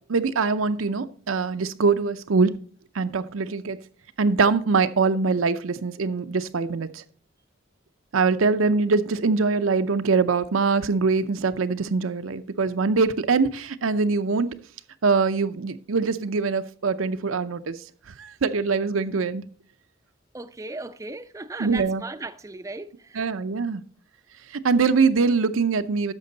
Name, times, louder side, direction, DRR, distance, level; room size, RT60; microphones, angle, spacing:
voice 1, 0.1-2.5 2.9-3.8 4.2-7.0 8.1-14.5 15.0-17.8 18.2-19.4 21.6-22.0 23.1-23.8 24.5-26.1, right 4 dB, 85° right, 0.6 m, -23 dB
voice 2, 20.3-23.4, right 2 dB, 15° right, 0.4 m, -37 dB
10.5 x 6.7 x 4.0 m
head